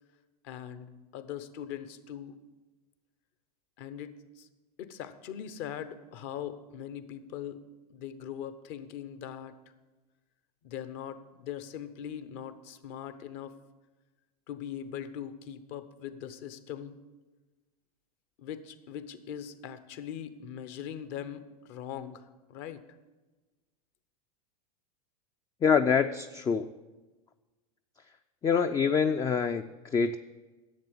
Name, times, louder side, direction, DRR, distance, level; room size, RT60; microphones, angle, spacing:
voice 1, 0.4-2.4 3.8-4.5 4.8-7.6 7.9-9.5 10.6-13.5 14.5-17.0 18.4-22.8, left 9 dB, 55° left, 12 dB, 0.9 m, -41 dB
voice 2, 25.6-26.7 28.4-30.2, left 6 dB, 20° left, 8 dB, 0.4 m, -26 dB
11.0 x 7.8 x 7.0 m, 1.2 s
hypercardioid pair, 100°, 20 cm